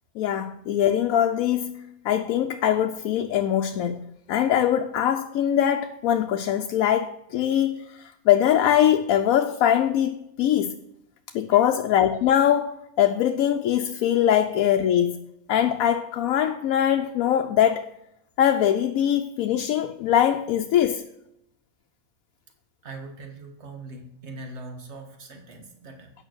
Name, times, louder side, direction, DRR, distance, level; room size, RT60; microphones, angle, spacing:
voice 1, 0.2-10.8 11.3-15.2 15.5-17.9 18.4-21.0, left 10 dB, 90° left, 1.0 m, -22 dB
voice 2, 22.8-26.1, right 2 dB, 55° right, 1.8 m, -41 dB
9.0 x 5.7 x 6.2 m
omnidirectional pair, 1.4 m